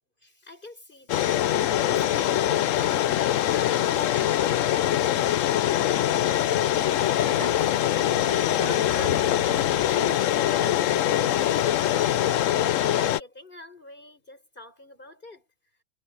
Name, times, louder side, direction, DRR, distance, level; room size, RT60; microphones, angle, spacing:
voice 1, 0.2-5.4 6.5-6.6 13.0-15.5, left 2 dB, 40° left, 5.8 m, -48 dB
sound 1, 1.1-13.2, left 11 dB, 90° left, 1.0 m, -23 dB
Sliding door, 5.6-11.2, left 2 dB, 70° left, 3.9 m, -42 dB
voice 2, 7.3-9.2 9.9-12.0, right 2 dB, 35° right, 2.7 m, -41 dB
omnidirectional pair, 1.3 m